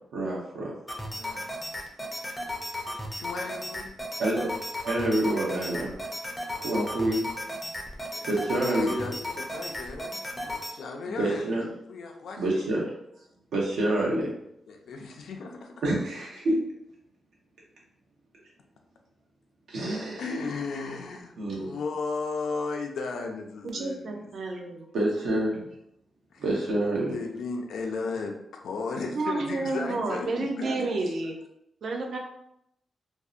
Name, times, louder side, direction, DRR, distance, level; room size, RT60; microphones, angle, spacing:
voice 1, 0.1-0.7 4.2-4.5 4.8-5.9 6.6-7.3 8.3-8.9 11.2-11.7 12.4-12.8 13.5-14.3 15.8-16.6 19.7-20.2 21.4-21.7 24.9-25.7 26.4-27.1, right 1 dB, 90° right, -4 dB, 0.8 m, -27 dB
sound 1, 0.9-10.7, left 1 dB, 15° left, 0.4 m, -35 dB
voice 2, 1.1-1.5 3.1-4.0 6.4-6.8 8.1-11.5 11.9-12.7 14.7-15.7 20.2-24.3 26.3-26.4 27.1-31.1, left 4 dB, 80° left, 2 dB, 0.4 m, -35 dB
voice 3, 23.6-24.9 29.1-31.4 31.8-32.2, right 3 dB, 55° right, 2 dB, 0.4 m, -30 dB
2.6 x 2.0 x 2.4 m, 0.79 s
wide cardioid pair, 140°, 0 cm